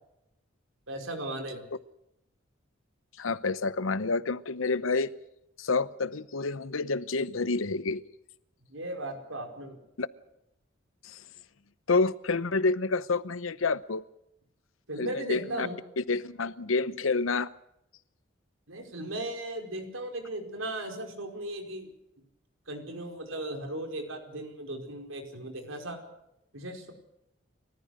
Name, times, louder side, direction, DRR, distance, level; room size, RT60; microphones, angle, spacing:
voice 1, 0.9-1.6 8.7-9.8 14.9-15.8 18.7-21.9 22.7-26.0 26.5-26.9, right 1 dB, 85° right, 4.9 m, -37 dB
voice 2, 3.2-5.1 5.6-8.0 10.0-10.1 11.0-11.2 11.9-14.0 15.0-15.7 16.0-17.5, left 3 dB, 90° left, 0.9 m, -28 dB
30.0 x 14.0 x 6.6 m
head